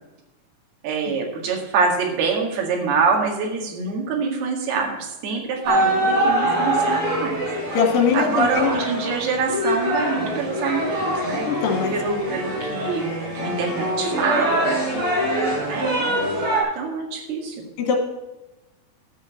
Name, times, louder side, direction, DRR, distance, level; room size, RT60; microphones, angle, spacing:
voice 1, 0.8-7.4 8.1-11.5 11.9-13.1 13.4-15.0 15.7-16.1 16.7-17.6, right 4 dB, 80° right, 0 dB, 3.9 m, -25 dB
sound 1, 5.6-16.6, right 1 dB, 50° right, 5.7 m, -24 dB
voice 2, 7.7-8.7 11.4-12.0 17.8-18.0, left 6 dB, 70° left, 3 dB, 3.5 m, -21 dB
12.0 x 7.0 x 7.6 m, 1.0 s
omnidirectional pair, 4.5 m